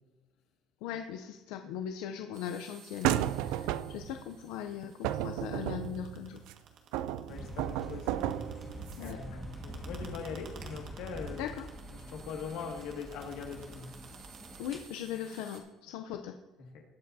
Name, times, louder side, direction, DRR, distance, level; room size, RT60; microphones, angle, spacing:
voice 1, 0.8-6.4 9.0-9.4 11.4-11.7 14.6-16.4, left 9 dB, 90° left, 6 dB, 0.5 m, -39 dB
sound 1, 2.3-15.6, right 6 dB, 50° right, 1.6 m, -56 dB
sound 2, 3.0-4.2 5.0-6.5 6.9-9.1, right 12 dB, 85° right, 0.4 m, -33 dB
voice 2, 7.3-8.2 9.0-11.4 11.9-13.9 16.6-16.8, left 5 dB, 65° left, 2 dB, 1.9 m, -42 dB
sound 3, 7.3-14.8, right 1 dB, 5° right, 1.7 m, -45 dB
20.0 x 7.7 x 2.7 m, 1.2 s
cardioid pair, 170°, 0 cm